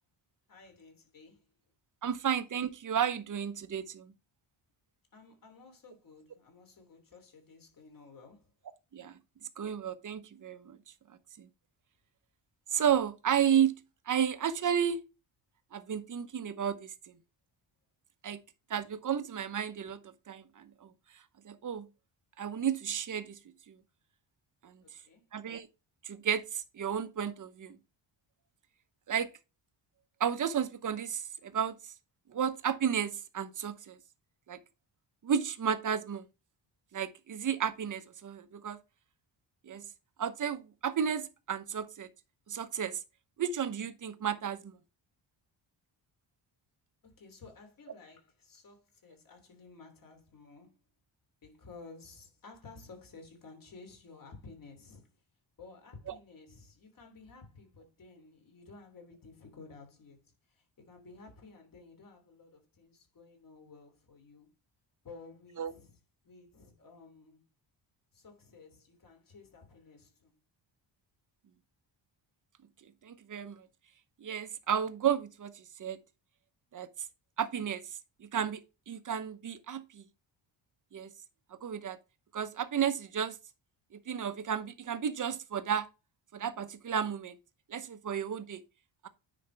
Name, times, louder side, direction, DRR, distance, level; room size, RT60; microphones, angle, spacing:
voice 1, 0.5-1.5 5.1-8.5 24.8-25.3 47.0-50.8 51.4-55.2 55.6-64.5 65.0-67.5 68.1-70.3, left 4 dB, 45° left, 3.2 m, -54 dB
voice 2, 2.0-4.1 8.9-9.2 9.6-10.8 11.4-11.5 12.7-13.8 14.1-15.0 15.7-17.2 18.2-18.4 18.7-20.9 21.4-21.9 22.4-23.4 23.7-23.8 24.6-24.7 25.3-25.7 26.0-27.8 29.1-29.3 30.2-31.8 32.3-34.0 34.5-34.6 35.2-36.2 36.9-38.8 39.6-39.9 40.2-42.1 42.5-43.0 43.4-44.8 65.6-65.7 73.0-73.7 74.2-76.0 76.7-76.9 77.4-77.8 78.2-78.6 78.9-80.0 80.9-81.1 81.6-82.0 82.3-83.4 84.1-85.9 86.3-87.4 87.7-88.6, right 8 dB, 40° right, 0.9 m, -32 dB
9.7 x 5.1 x 3.4 m
cardioid pair, 140°, 47 cm